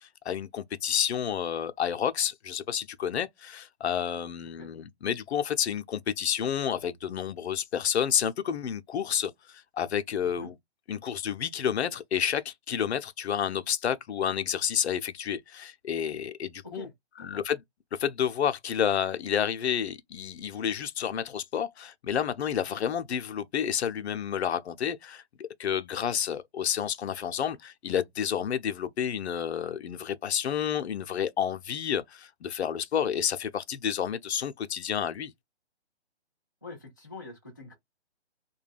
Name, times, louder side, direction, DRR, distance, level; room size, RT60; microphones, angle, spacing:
voice 1, 0.0-10.5 10.9-16.9 17.2-17.6 18.0-35.3, left 8 dB, 75° left, 0.5 m, -30 dB
voice 2, 36.6-37.7, left 2 dB, 20° left, 0.3 m, -45 dB
2.2 x 2.2 x 3.2 m
hypercardioid pair, 155°, 33 cm